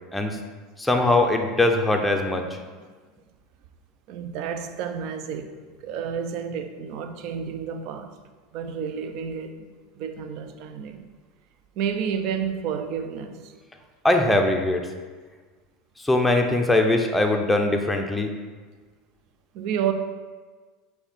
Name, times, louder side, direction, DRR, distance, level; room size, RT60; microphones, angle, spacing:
voice 1, 0.8-2.4 14.0-14.9 16.0-18.3, left 2 dB, 5° left, 0.5 m, -21 dB
voice 2, 4.1-5.6 5.8-8.2 8.5-9.5 10.0-11.1 11.8-13.5 19.5-19.9, right 7 dB, 60° right, 0.4 m, -30 dB
5.5 x 2.2 x 4.3 m
hypercardioid pair, 95°, 0 cm